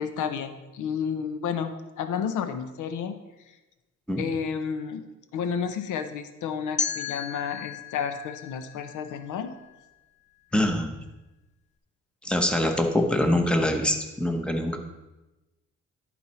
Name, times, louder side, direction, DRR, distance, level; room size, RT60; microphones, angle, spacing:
voice 1, 0.0-3.1 4.2-5.0 5.3-9.5, left 7 dB, 80° left, 9 dB, 0.7 m, -31 dB
sound 1, 6.8-9.7, left 5 dB, 25° left, 0.5 m, -34 dB
voice 2, 10.5-10.9 12.2-14.8, left 1 dB, 5° left, 4 dB, 1.0 m, -24 dB
11.0 x 4.3 x 4.3 m, 1.1 s
cardioid pair, 90°, 30 cm